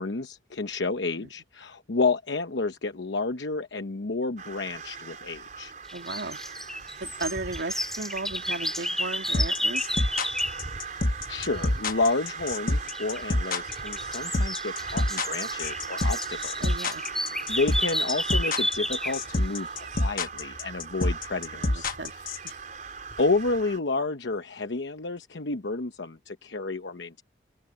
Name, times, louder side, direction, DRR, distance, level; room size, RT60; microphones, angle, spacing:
voice 1, 0.0-5.7 11.3-16.5 17.0-21.9 23.2-27.2, left 3 dB, 80° left, 0.9 m, -30 dB
sound 1, 4.4-23.8, right 5 dB, 45° right, 4.9 m, -39 dB
sound 2, 5.9-10.6 12.9-13.2 13.7-19.3, equal, ahead, 2.7 m, -32 dB
voice 2, 5.9-6.4 7.0-9.9 16.6-17.0 21.5-22.1 22.4-22.6, right 2 dB, 80° right, 2.8 m, -35 dB
sound 3, 9.3-22.5, left 2 dB, 50° left, 1.1 m, -26 dB
head